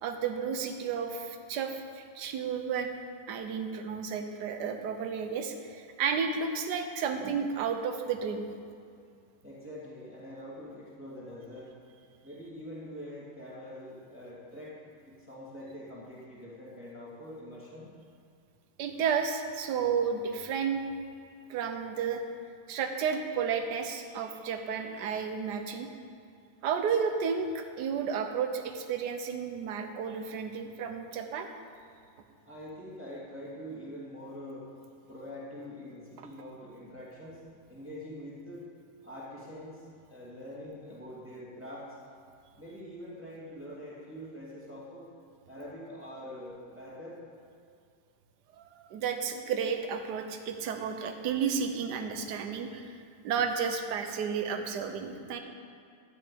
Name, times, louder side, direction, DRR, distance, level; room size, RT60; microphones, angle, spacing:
voice 1, 0.0-2.9 3.3-8.5 18.8-20.8 21.5-22.2 22.7-25.9 26.6-31.5 48.6-53.0 53.2-55.4, right 6 dB, 60° right, 5 dB, 1.4 m, -32 dB
voice 2, 9.4-11.7 12.2-14.8 15.0-17.9 32.5-34.7 35.1-37.4 37.7-38.7 39.0-42.0 42.6-45.0 45.5-47.2, equal, 5° right, -7 dB, 2.5 m, -44 dB
12.0 x 6.5 x 8.6 m, 2.4 s
omnidirectional pair, 2.3 m